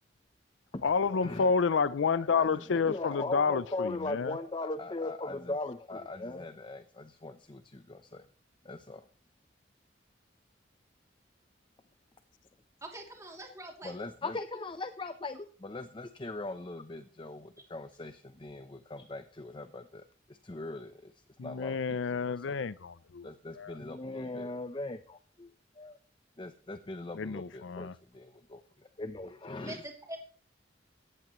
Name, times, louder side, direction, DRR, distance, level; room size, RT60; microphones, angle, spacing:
voice 1, 0.8-4.4 21.4-23.3 23.5-23.8 27.1-27.9, left 5 dB, 85° left, 0.5 m, -29 dB
voice 2, 2.4-8.2 8.6-9.0 13.8-20.0 20.4-21.1 21.4-22.6 23.2-25.5 25.8-26.0 26.4-28.6 29.0-29.8, left 2 dB, 25° left, 0.7 m, -40 dB
voice 3, 12.8-14.0 29.6-30.2, right 1 dB, 15° right, 2.8 m, -44 dB
17.5 x 14.0 x 3.1 m
head